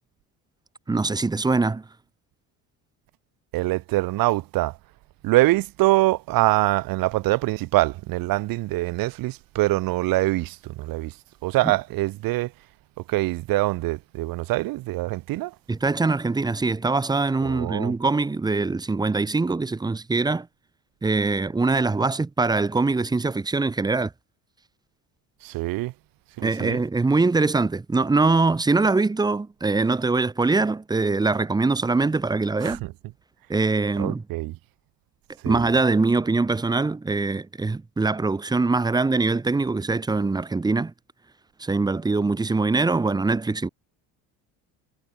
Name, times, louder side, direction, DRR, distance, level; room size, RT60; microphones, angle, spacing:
voice 1, 0.9-1.8 15.7-20.5 21.0-24.1 26.4-32.8 33.5-34.2 35.5-40.9 41.6-43.7, right 3 dB, 10° right, 1.1 m, -23 dB
voice 2, 3.5-4.8 5.2-11.1 11.4-12.5 13.1-15.5 17.4-17.9 25.4-25.9 26.4-26.8 32.6-32.8 34.0-34.5 35.4-35.6, right 18 dB, 70° right, 3.5 m, -24 dB
cardioid pair, 135°, 36 cm